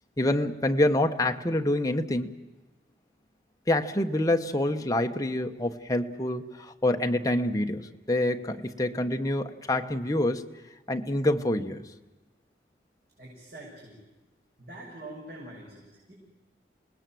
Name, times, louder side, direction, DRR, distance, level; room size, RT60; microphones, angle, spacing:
voice 1, 0.2-2.4 3.7-10.4 10.9-11.9, left 1 dB, 20° left, 5 dB, 1.1 m, -26 dB
voice 2, 13.2-14.0 14.6-16.1, right 1 dB, 65° right, -4 dB, 7.0 m, -44 dB
28.0 x 19.5 x 7.7 m, 1.2 s
head